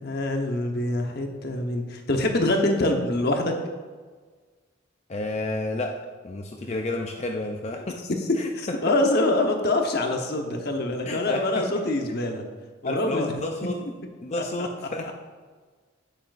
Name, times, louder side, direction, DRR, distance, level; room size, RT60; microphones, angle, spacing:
voice 1, 0.0-3.5 7.8-7.9 8.5-12.4 12.8-13.3 14.4-14.7, left 1 dB, 50° left, 3 dB, 1.0 m, -25 dB
voice 2, 5.1-5.9 6.2-8.0 8.4-8.5 8.9-9.0 11.0-12.2 12.8-13.8 14.2-15.1, left 2 dB, 35° left, 2 dB, 0.5 m, -31 dB
8.9 x 8.5 x 2.5 m, 1.5 s
head